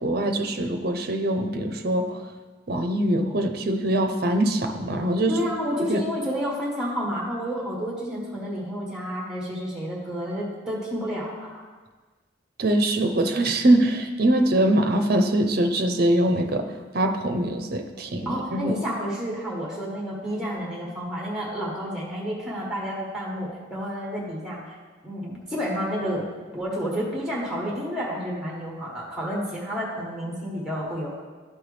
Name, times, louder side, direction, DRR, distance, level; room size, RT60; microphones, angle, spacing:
voice 1, 0.0-2.2 2.7-5.5 5.9-6.0 12.6-16.7 16.9-18.7, right 1 dB, 50° right, 6 dB, 0.6 m, -23 dB
voice 2, 5.3-11.6 18.2-24.8 25.0-26.3 26.5-31.2, equal, 5° right, -4 dB, 1.2 m, -30 dB
11.5 x 4.5 x 3.3 m, 1.4 s
head